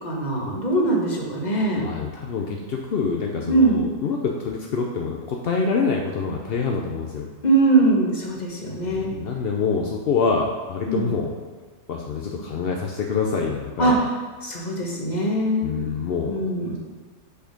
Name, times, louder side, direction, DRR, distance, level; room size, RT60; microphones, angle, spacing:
voice 1, 0.0-1.9 3.5-3.8 7.4-9.1 10.9-11.1 13.8-13.9 14.4-15.7 16.3-16.8, right 2 dB, 30° left, -2 dB, 1.3 m, -21 dB
voice 2, 1.7-7.3 8.8-11.3 11.9-14.0 15.6-16.4 16.7-16.8, left 5 dB, 60° left, 1 dB, 0.6 m, -26 dB
6.6 x 5.2 x 5.2 m, 1.5 s
omnidirectional pair, 1.6 m